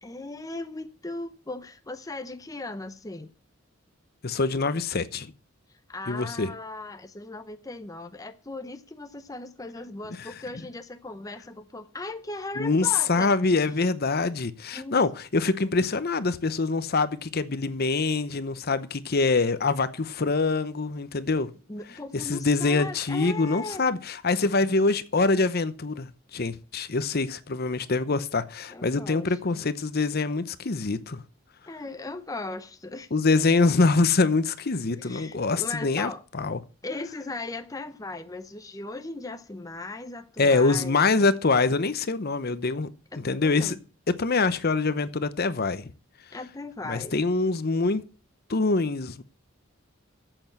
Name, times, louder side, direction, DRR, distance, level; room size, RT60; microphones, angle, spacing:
voice 1, 0.0-3.3 5.9-13.3 14.7-15.0 21.3-23.8 28.7-29.7 31.7-33.1 34.9-36.2 36.8-41.1 43.1-43.8 46.3-47.1, left 2 dB, 15° left, 0.7 m, -38 dB
voice 2, 4.2-5.3 6.1-6.5 10.2-10.3 12.6-21.5 22.1-31.2 33.1-36.6 40.4-42.9 43.2-43.8 44.1-45.8 46.8-48.0 48.5-49.2, left 3 dB, 50° left, 0.8 m, -25 dB
8.7 x 7.9 x 8.0 m
head